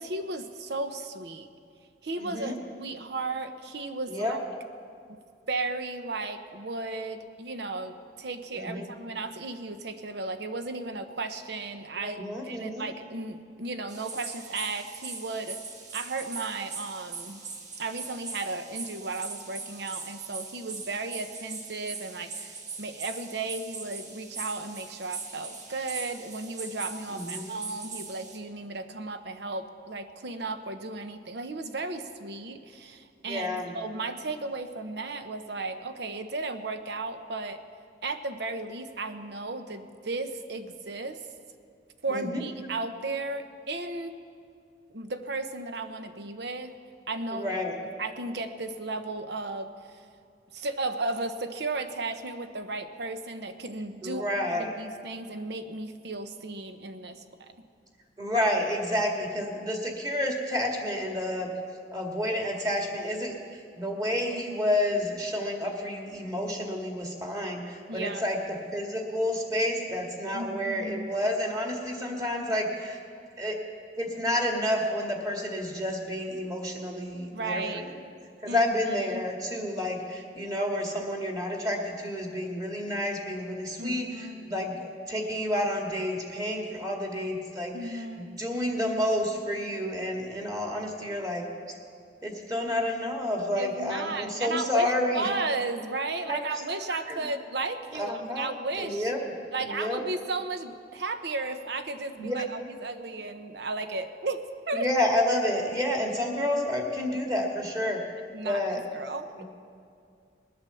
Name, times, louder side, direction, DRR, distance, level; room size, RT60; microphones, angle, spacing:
voice 1, 0.0-1.5 2.0-4.4 5.5-15.6 15.9-17.4 17.8-37.6 38.0-41.3 42.0-44.2 44.9-46.7 47.1-47.5 48.0-49.7 50.5-57.5 67.9-68.2 70.3-71.1 77.3-77.9 78.5-78.7 79.1-79.2 83.8-84.6 87.7-88.4 93.6-99.1 99.5-104.9 108.3-108.6 108.9-109.4, right 3 dB, 65° right, 9 dB, 0.9 m, -34 dB
voice 2, 2.2-2.6 4.1-4.4 8.5-8.9 12.0-12.8 27.1-27.6 33.3-33.7 42.1-42.4 47.3-47.7 54.0-54.7 58.2-61.5 61.9-68.4 68.7-73.0 73.4-73.6 74.0-77.9 78.4-91.4 92.2-95.3 96.3-96.4 96.9-97.2 97.9-98.5 98.8-99.2 99.6-100.0 102.2-102.5 104.7-108.0 108.4-108.8 109.4-109.5, left 1 dB, 20° right, 1 dB, 1.9 m, -30 dB
sound 1, 13.9-28.4, right 4 dB, 40° right, 1.4 m, -41 dB
20.5 x 8.8 x 7.0 m, 2.3 s
head